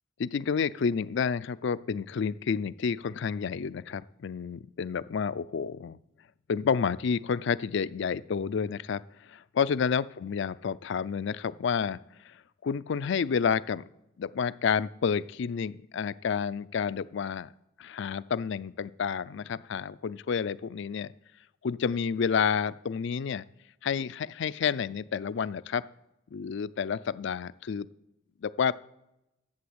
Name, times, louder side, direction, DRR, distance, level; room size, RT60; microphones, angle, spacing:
voice 1, 0.2-6.0 6.5-13.8 14.2-17.5 17.8-21.1 21.6-23.4 23.8-25.8 26.3-27.9 28.4-28.8, left 6 dB, 65° left, 17 dB, 0.4 m, -30 dB
11.5 x 7.5 x 8.0 m, 0.91 s
head